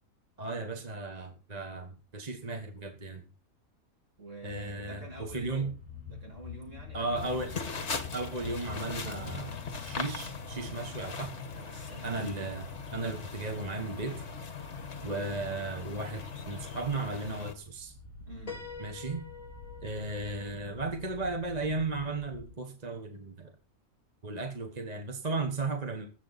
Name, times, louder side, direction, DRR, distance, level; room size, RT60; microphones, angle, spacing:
voice 1, 0.4-3.2 4.4-5.7 6.9-7.5 8.1-11.3 12.0-12.6 12.9-14.2 15.0-17.9 18.8-19.2 19.8-23.5 24.2-26.1, right 3 dB, 30° right, 5 dB, 1.4 m, -35 dB
voice 2, 4.2-5.7 6.1-7.4 11.6-12.3 18.3-18.6, right 2 dB, 55° right, 0 dB, 6.3 m, -47 dB
sound 1, 4.5-12.2 16.0-22.5, left 6 dB, 5° right, 4.3 m, -48 dB
sound 2, 7.2-17.5, left 5 dB, 50° left, 1.8 m, -40 dB
Piano, 18.5-22.2, left 4 dB, 30° left, 1.4 m, -48 dB
19.5 x 8.2 x 4.1 m, 0.35 s
omnidirectional pair, 1.6 m